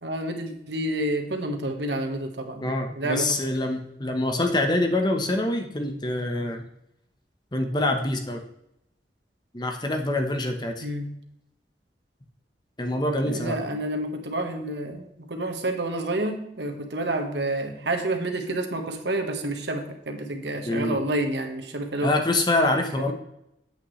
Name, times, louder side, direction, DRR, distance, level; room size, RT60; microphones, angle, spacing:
voice 1, 0.0-3.4 10.8-11.1 13.2-22.1 22.9-23.1, right 1 dB, 85° right, 5 dB, 1.4 m, -29 dB
voice 2, 2.6-6.6 7.5-8.4 9.5-10.8 12.8-13.5 20.7-21.0 22.0-23.1, left 2 dB, 25° left, 4 dB, 1.0 m, -25 dB
9.0 x 8.5 x 3.2 m, 0.81 s
head